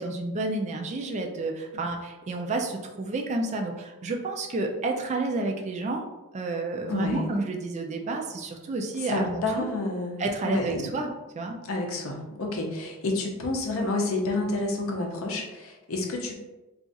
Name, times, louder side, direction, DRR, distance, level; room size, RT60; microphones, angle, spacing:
voice 1, 0.0-6.1 6.3-9.7 10.2-11.6, right 2 dB, 30° right, 2 dB, 0.3 m, -30 dB
voice 2, 6.9-7.3 9.1-10.9 11.7-16.3, left 2 dB, 65° left, 1 dB, 0.6 m, -29 dB
2.4 x 2.3 x 3.9 m, 1.1 s
head